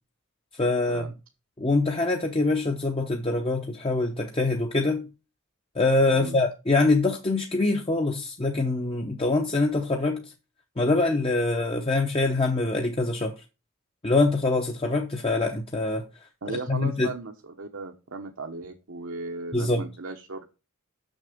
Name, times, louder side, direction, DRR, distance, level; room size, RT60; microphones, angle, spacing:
voice 1, 0.6-1.0 1.6-5.1 5.7-10.3 10.8-13.3 14.0-16.0 16.7-17.1 19.5-19.8, left 2 dB, 25° left, 0.8 m, -24 dB
voice 2, 6.1-6.4 16.4-20.5, right 3 dB, 70° right, 1.1 m, -36 dB
6.6 x 6.4 x 5.0 m
head